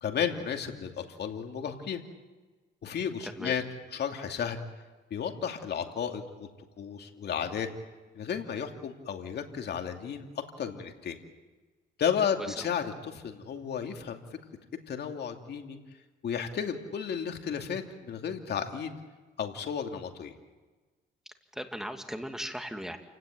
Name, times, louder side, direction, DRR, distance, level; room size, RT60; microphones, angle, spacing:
voice 1, 0.0-2.0 2.8-3.6 3.9-4.6 5.1-6.5 6.8-7.7 8.1-10.2 10.6-11.2 12.0-14.2 14.9-15.8 16.2-18.9 19.4-20.3, left 7 dB, 60° left, 4 dB, 2.6 m, -33 dB
voice 2, 3.2-3.6 12.4-12.7 21.5-23.0, equal, ahead, 6 dB, 2.5 m, -38 dB
28.5 x 17.0 x 9.3 m, 1.3 s
cardioid pair, 100°, 19 cm